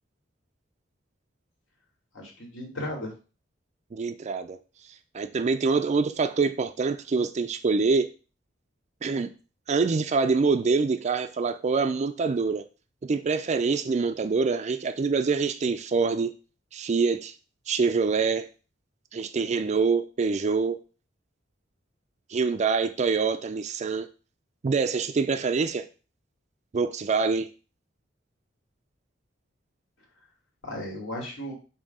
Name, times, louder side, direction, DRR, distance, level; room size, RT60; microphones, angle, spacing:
voice 1, 2.1-3.1 30.6-31.5, left 1 dB, 85° left, 2.6 m, -35 dB
voice 2, 3.9-4.6 5.1-8.1 9.0-9.3 9.7-12.7 13.0-16.3 16.7-17.3 17.7-18.5 19.1-20.8 22.3-24.1 24.6-25.8 26.7-27.5, right 4 dB, 35° right, 0.4 m, -25 dB
7.2 x 2.8 x 5.3 m
head